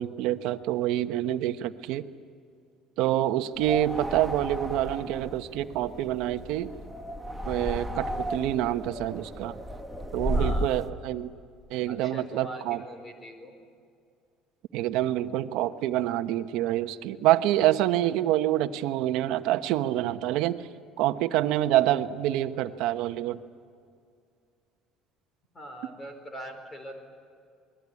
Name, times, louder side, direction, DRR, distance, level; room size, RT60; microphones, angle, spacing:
voice 1, 0.0-2.1 3.0-6.7 7.5-9.6 10.1-11.3 11.7-12.8 14.7-20.7 21.0-23.4, right 13 dB, 70° right, 9 dB, 1.1 m, -27 dB
sound 1, 3.5-10.9, equal, 5° right, 1.1 m, -34 dB
voice 2, 10.3-10.7 11.9-13.5 25.5-27.0, right 1 dB, 20° left, 6 dB, 4.6 m, -42 dB
27.0 x 21.0 x 9.8 m, 2.3 s
cardioid pair, 150°, 0 cm